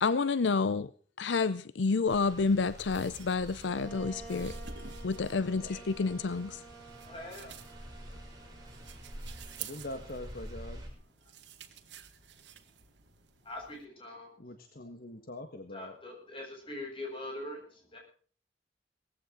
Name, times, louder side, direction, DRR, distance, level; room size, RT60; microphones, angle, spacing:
voice 1, 0.0-0.9 1.2-4.6 5.0-6.6, left 4 dB, 90° left, 0.6 m, -29 dB
sound 1, 2.1-10.9, equal, 20° right, 6.9 m, -47 dB
sound 2, 2.1-13.9, right 9 dB, 90° right, 2.1 m, -52 dB
Wind instrument woodwind instrument, 3.6-11.1, right 3 dB, 10° left, 4.0 m, -52 dB
voice 2, 7.0-7.6 11.2-11.3 13.4-14.4 15.7-18.0, left 1 dB, 30° left, 7.9 m, -43 dB
voice 3, 9.6-10.8 14.4-15.9, left 1 dB, 55° left, 1.6 m, -43 dB
19.5 x 15.5 x 3.9 m
head